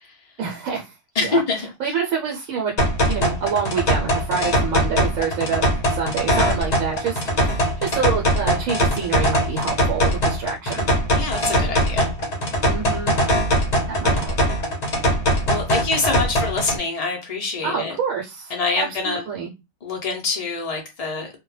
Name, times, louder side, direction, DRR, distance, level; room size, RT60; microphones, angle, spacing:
voice 1, 0.4-1.4 1.8-2.7 3.1-10.9 12.7-13.1 13.9-14.3 17.6-19.5, right 6 dB, 75° right, 1.0 m, -27 dB
voice 2, 1.2-1.7 11.1-12.1 15.5-18.0 18.5-19.2 19.8-21.3, left 4 dB, 85° left, 0.3 m, -25 dB
sound 1, 2.8-16.8, equal, 45° left, 0.6 m, -21 dB
2.2 x 2.1 x 3.0 m
omnidirectional pair, 1.4 m